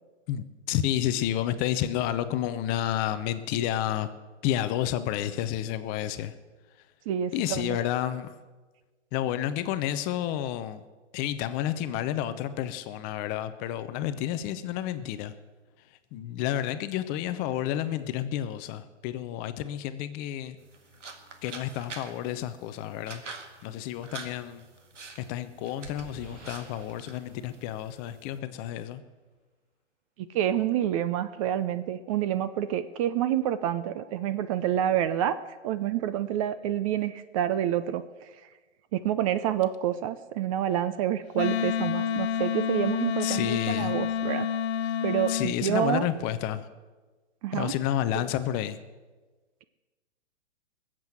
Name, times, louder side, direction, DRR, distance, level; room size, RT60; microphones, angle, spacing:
voice 1, 0.3-4.1 4.4-6.3 7.3-8.3 9.1-10.8 11.1-15.3 16.1-20.6 21.4-23.2 23.6-24.6 25.1-29.0 43.2-43.9 44.9-45.0 45.3-46.7 47.5-48.8, left 11 dB, 25° left, 11 dB, 0.6 m, -30 dB
voice 2, 7.1-7.8 30.2-38.5 38.9-44.5 45.0-46.1 47.4-47.7 48.1-48.3, right 11 dB, 30° right, 13 dB, 0.5 m, -28 dB
sound 1, 20.6-28.4, right 4 dB, 85° right, 1.9 m, -47 dB
sound 2, 25.0-28.7, right 1 dB, 70° right, 3.4 m, -50 dB
Wind instrument woodwind instrument, 41.3-45.5, left 8 dB, 60° left, 0.8 m, -28 dB
20.0 x 7.6 x 7.8 m, 1.3 s
hypercardioid pair, 125°, 36 cm